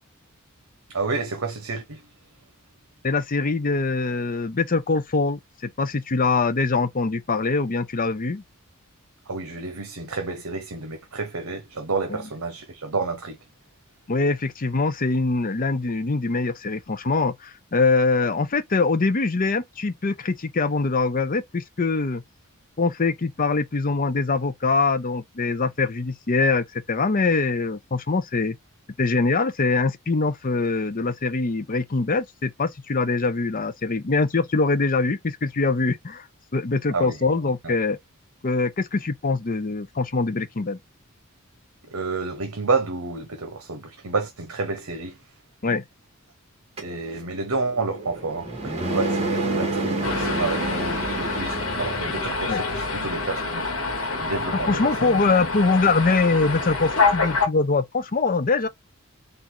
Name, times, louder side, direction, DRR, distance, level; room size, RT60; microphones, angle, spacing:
voice 1, 0.9-2.0 9.3-13.4 36.9-37.2 37.6-37.7 41.9-45.2 46.8-53.7 54.2-55.2, right 3 dB, 70° right, 1.0 m, -30 dB
voice 2, 3.0-8.4 12.1-12.2 14.1-22.2 22.8-28.6 29.0-36.2 36.5-38.0 38.4-40.8 45.6-45.8 52.5-52.7 54.7-58.7, left 3 dB, 40° left, 0.7 m, -23 dB
sound 1, 46.8-52.4, right 2 dB, 30° right, 1.8 m, -29 dB
sound 2, 50.0-57.5, left 3 dB, 65° left, 1.4 m, -26 dB
4.0 x 2.6 x 4.5 m
head